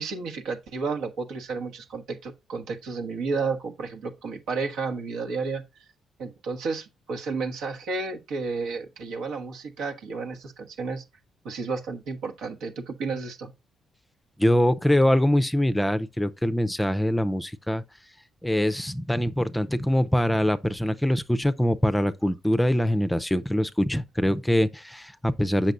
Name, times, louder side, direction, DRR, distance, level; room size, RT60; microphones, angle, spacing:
voice 1, 0.0-5.6 6.2-11.0 11.4-13.5, right 4 dB, 85° right, 1.3 m, -32 dB
voice 2, 14.4-17.8 18.4-25.7, left 1 dB, 5° left, 0.5 m, -23 dB
8.0 x 5.9 x 2.5 m
cardioid pair, 90°, 0 cm